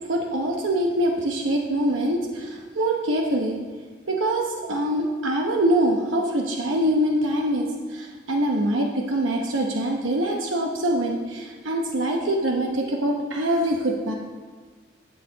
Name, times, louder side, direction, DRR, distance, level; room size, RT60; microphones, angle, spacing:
voice 1, 0.1-3.6 4.1-14.1, right 1 dB, 90° right, 1 dB, 0.9 m, -24 dB
12.5 x 7.3 x 4.0 m, 1.5 s
head